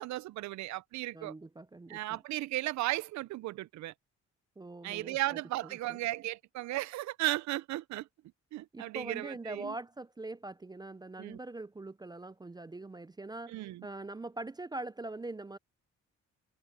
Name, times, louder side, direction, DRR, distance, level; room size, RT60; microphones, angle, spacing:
voice 1, 0.0-1.3 1.9-3.9 4.8-8.1 8.5-9.7 11.2-11.4 13.5-13.9, right 16 dB, 70° right, 0.5 m, -35 dB
voice 2, 1.1-2.2 4.6-6.0 8.7-15.6, right 2 dB, 15° right, 0.5 m, -43 dB
cardioid pair, 90°, 30 cm